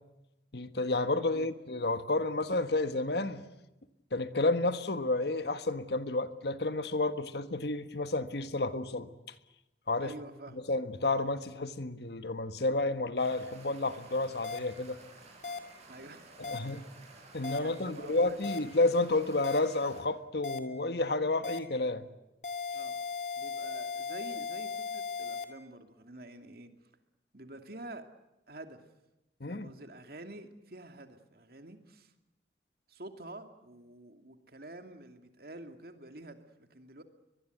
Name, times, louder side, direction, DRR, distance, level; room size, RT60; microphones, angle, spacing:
voice 1, 0.5-3.4 4.1-9.1 9.9-10.1 10.7-15.0 16.4-16.8 17.3-22.1 29.4-29.7, left 2 dB, 70° left, 1.5 m, -31 dB
voice 2, 10.0-10.7 15.9-16.6 17.6-18.4 22.7-23.0 23.4-26.7 27.3-28.1 28.5-28.8 29.5-32.1 32.9-37.0, right 2 dB, 55° right, 2.6 m, -48 dB
sound 1, 13.2-20.0, right 2 dB, 40° right, 7.1 m, -54 dB
sound 2, 14.4-14.6 15.4-15.6 16.4-16.6 17.4-17.6 18.4-18.6 19.4-19.6 20.4-20.6 21.4-21.6 22.4-25.4, left 5 dB, 40° left, 2.3 m, -37 dB
23.0 x 22.0 x 9.3 m
head